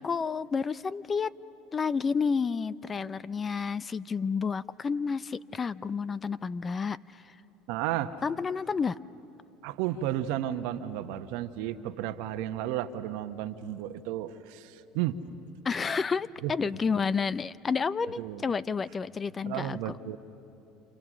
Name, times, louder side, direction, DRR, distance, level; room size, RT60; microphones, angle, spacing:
voice 1, 0.0-1.3 1.7-7.0 8.2-9.0 15.6-19.9, left 5 dB, 30° left, 18 dB, 0.5 m, -30 dB
voice 2, 7.7-8.2 9.6-15.2 16.4-17.0 18.2-18.5 19.5-20.2, right 12 dB, 70° right, 10 dB, 1.1 m, -33 dB
29.0 x 27.5 x 6.3 m, 2.8 s
supercardioid pair, 90°, 0 cm